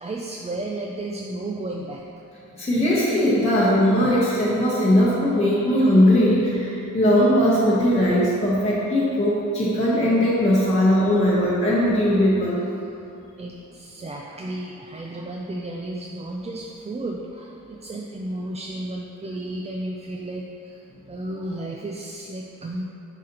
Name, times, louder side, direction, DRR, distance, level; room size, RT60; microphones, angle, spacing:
voice 1, 0.0-2.0 4.0-4.2 13.4-20.7 21.1-22.8, right 1 dB, 20° right, -1 dB, 0.3 m, -33 dB
voice 2, 2.5-12.6, equal, 20° left, -8 dB, 1.0 m, -19 dB
7.6 x 5.0 x 2.9 m, 2.8 s
wide cardioid pair, 110°, 31 cm